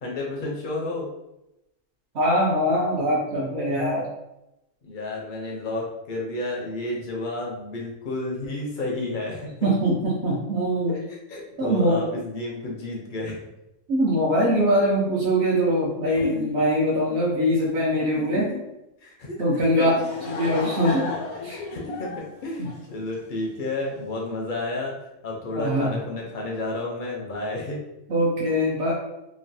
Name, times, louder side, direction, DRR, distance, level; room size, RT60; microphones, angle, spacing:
voice 1, 0.0-1.1 4.8-9.5 10.9-13.5 16.1-16.5 17.1-17.2 18.2-18.6 19.0-20.1 20.4-20.5 21.7-24.9 25.2-27.8, left 2 dB, 55° left, -2 dB, 0.5 m, -31 dB
voice 2, 2.1-4.1 9.6-10.9 11.6-12.0 13.9-18.5 19.4-19.9 20.3-21.1 21.4-21.6 25.5-25.9 28.1-28.9, equal, 60° right, -5 dB, 0.9 m, -22 dB
Laughter / Crowd, 19.7-23.4, left 3 dB, 90° left, 1.0 m, -34 dB
3.1 x 2.2 x 2.6 m, 0.90 s
omnidirectional pair, 1.4 m